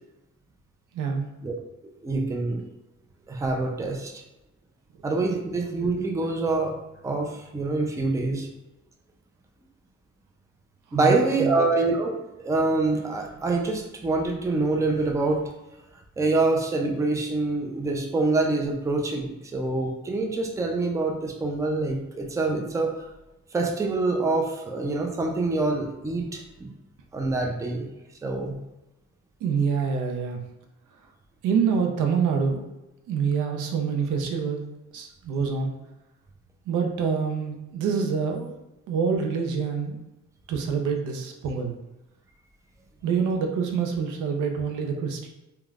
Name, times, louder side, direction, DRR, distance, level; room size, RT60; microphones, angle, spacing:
voice 1, 0.9-1.3 10.9-11.6 29.4-30.4 31.4-32.6 33.1-34.6 34.9-35.7 36.7-38.6 38.9-40.0 40.5-41.7 43.0-45.3, right 6 dB, 85° right, 4 dB, 0.5 m, -26 dB
voice 2, 2.0-2.6 3.3-4.1 5.0-6.8 7.0-8.5 10.9-15.4 16.2-23.0 23.5-26.7 27.1-27.9 28.2-28.6, right 3 dB, 10° right, 2 dB, 0.4 m, -25 dB
3.1 x 2.2 x 2.3 m, 0.98 s
cardioid pair, 90°, 30 cm